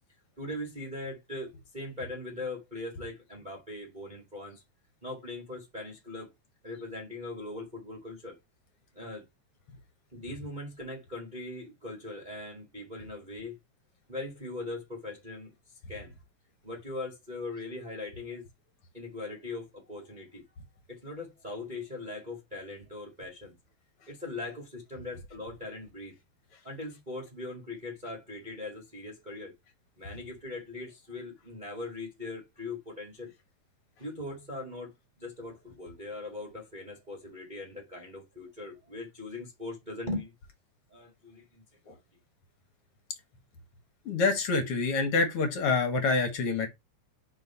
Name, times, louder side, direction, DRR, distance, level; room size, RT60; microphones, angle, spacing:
voice 1, 0.4-4.6 5.0-6.3 6.6-8.3 8.9-9.2 10.1-13.6 14.1-15.5 15.9-16.1 16.6-18.5 18.9-20.4 20.9-23.6 24.1-26.1 26.6-29.5 30.0-33.3 34.0-40.3 40.9-42.0, left 2 dB, 25° right, 1.0 m, -40 dB
voice 2, 44.1-46.7, left 4 dB, 50° left, 2.1 m, -26 dB
5.2 x 4.6 x 5.6 m
omnidirectional pair, 4.1 m